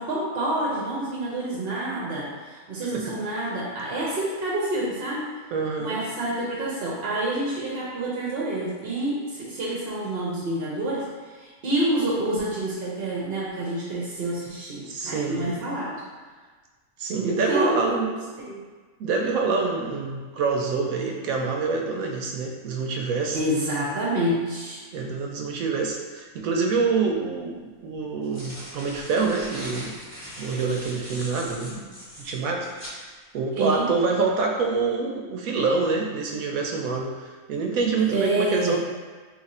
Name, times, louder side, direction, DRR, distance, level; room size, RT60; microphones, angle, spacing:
voice 1, 0.0-5.3 5.8-11.1 11.4-16.0 17.2-18.1 18.4-18.6 23.3-24.8 33.6-33.9 38.0-38.8, right 1 dB, 50° right, -6 dB, 0.8 m, -28 dB
voice 2, 5.5-6.0 14.9-15.6 17.0-18.1 19.0-23.4 24.9-29.9 30.4-31.9 32.2-33.1 33.3-37.1 37.5-38.8, right 4 dB, 80° right, 2 dB, 1.0 m, -26 dB
sound 1, 26.9-27.0 28.0-33.0, equal, 30° left, 0.8 m, -40 dB
3.0 x 2.5 x 4.1 m, 1.4 s
omnidirectional pair, 1.5 m